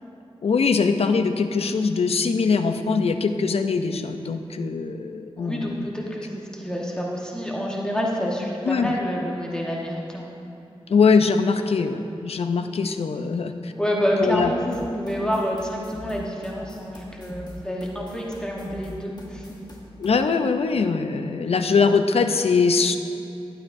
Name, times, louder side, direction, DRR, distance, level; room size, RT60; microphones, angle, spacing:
voice 1, 0.4-5.9 8.6-8.9 10.9-13.7 14.2-14.5 20.0-23.0, left 5 dB, 80° left, 8 dB, 0.5 m, -22 dB
voice 2, 5.4-10.3 13.7-19.6, equal, 10° left, -3 dB, 1.1 m, -28 dB
sound 1, 14.7-20.1, left 1 dB, 40° left, 1.4 m, -42 dB
12.0 x 11.5 x 2.6 m, 2.8 s
wide cardioid pair, 85°, 10 cm